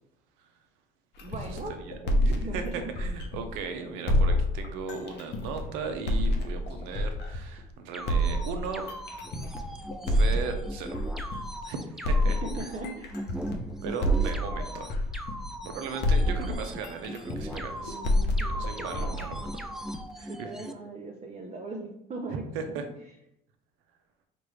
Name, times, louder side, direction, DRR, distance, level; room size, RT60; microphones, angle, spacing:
sound 1, 1.2-3.6 4.1-7.6 8.1-11.6 12.0-15.7 16.0-20.1, equal, 55° left, 0.8 m, -28 dB
voice 1, 1.2-1.7 2.0-2.9 12.2-13.3 17.8-19.2 20.3-22.8, right 3 dB, 35° right, 1 dB, 0.7 m, -40 dB
voice 2, 2.3-8.8 10.1-11.0 11.6-12.4 13.8-15.0 15.7-18.0 18.6-19.5 20.2-20.5 22.5-22.8, right 5 dB, 75° right, 6 dB, 0.7 m, -37 dB
sound 2, 7.9-20.7, equal, ahead, 0.3 m, -39 dB
4.5 x 2.6 x 3.1 m, 0.80 s
hypercardioid pair, 70°, 21 cm